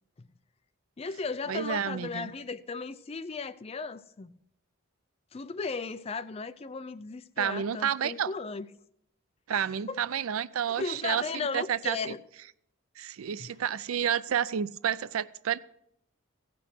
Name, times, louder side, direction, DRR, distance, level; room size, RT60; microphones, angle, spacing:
voice 1, 1.0-4.3 5.3-8.7 9.5-10.0 10.7-12.2 13.4-13.5, left 4 dB, 30° left, 0.4 m, -36 dB
voice 2, 1.5-2.3 7.4-8.3 9.5-11.2 11.5-12.1 13.0-15.6, right 8 dB, 80° right, 0.4 m, -30 dB
16.0 x 6.0 x 6.1 m
head